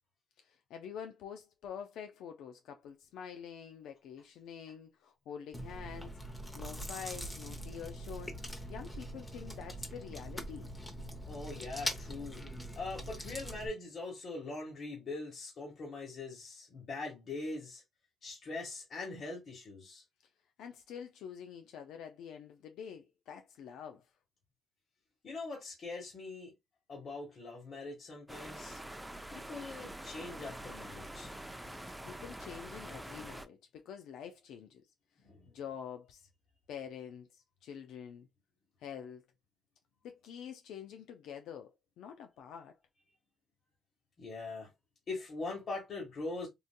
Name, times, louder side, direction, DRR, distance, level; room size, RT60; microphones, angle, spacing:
voice 1, 0.4-6.1 6.5-8.4 8.7-10.7 20.6-24.1 32.0-34.8 35.5-36.3 36.7-38.3 38.8-39.2 40.0-42.8, left 8 dB, 85° left, 0.4 m, -47 dB
Chewing mastication, 5.5-13.7, equal, 15° left, 0.9 m, -42 dB
voice 2, 11.3-12.4 12.7-17.8 18.2-20.0 25.2-26.5 26.9-28.8 29.3-31.3 35.2-35.4 44.2-44.7 45.1-46.5, left 3 dB, 55° left, 1.4 m, -42 dB
sound 1, 28.3-33.5, right 1 dB, 5° right, 0.5 m, -46 dB
3.8 x 2.6 x 2.2 m
cardioid pair, 90°, 0 cm